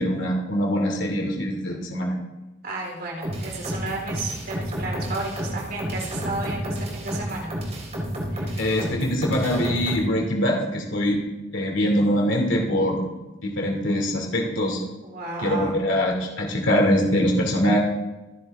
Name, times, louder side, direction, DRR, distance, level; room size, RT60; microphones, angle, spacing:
voice 1, 0.0-2.2 8.6-11.2 11.5-13.1 13.4-14.8 15.4-17.8, equal, 75° left, 1 dB, 2.5 m, -23 dB
voice 2, 2.6-7.5 8.3-8.5 15.0-15.8, right 2 dB, 55° right, -1 dB, 4.1 m, -32 dB
sound 1, 3.2-10.1, equal, 35° right, 3.7 m, -31 dB
24.5 x 10.5 x 3.5 m, 1.1 s
head